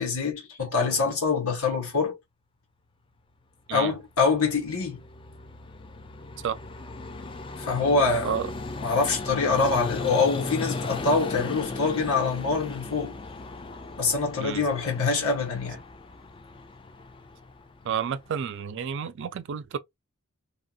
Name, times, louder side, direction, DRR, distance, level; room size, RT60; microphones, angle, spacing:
voice 1, 0.0-2.2 3.7-5.0 7.6-8.4 8.8-13.1 14.0-15.8, left 4 dB, 85° left, 1.4 m, -25 dB
Vehicle, 3.9-18.6, left 3 dB, 25° left, 0.3 m, -37 dB
voice 2, 17.8-19.8, right 7 dB, 55° right, 0.3 m, -30 dB
2.8 x 2.6 x 2.4 m
head